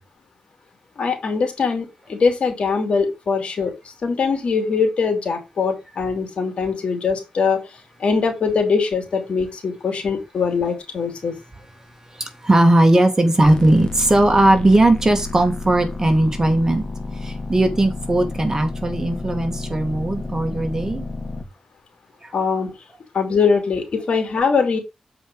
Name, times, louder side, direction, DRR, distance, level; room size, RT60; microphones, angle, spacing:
voice 1, 1.0-3.7 4.0-7.7 8.0-11.4 22.3-22.7 23.1-24.8, left 5 dB, 65° left, 2.8 m, -22 dB
voice 2, 12.2-16.9 17.2-21.1, right 1 dB, 25° right, 2.3 m, -18 dB
sound 1, 13.4-21.4, left 3 dB, 40° left, 1.7 m, -31 dB
7.6 x 4.9 x 5.2 m
cardioid pair, 70°, 2 cm